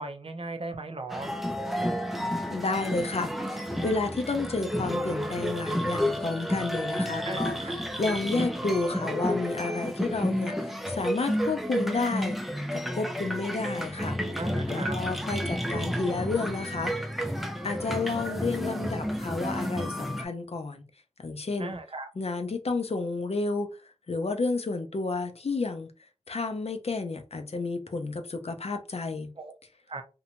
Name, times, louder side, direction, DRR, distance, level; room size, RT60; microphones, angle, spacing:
voice 1, 0.0-1.3 7.2-7.7 14.3-15.0 21.6-22.1 29.4-29.5 29.9-30.0, right 2 dB, 55° right, 0.6 m, -37 dB
sound 1, 1.1-20.2, equal, ahead, 0.4 m, -31 dB
voice 2, 2.5-7.6 8.0-12.4 12.7-14.2 14.7-16.9 17.6-20.8 21.2-21.7 22.2-23.8 24.1-25.9 26.3-29.3, left 3 dB, 65° left, 0.5 m, -31 dB
2.6 x 2.2 x 2.9 m
wide cardioid pair, 60°, 12 cm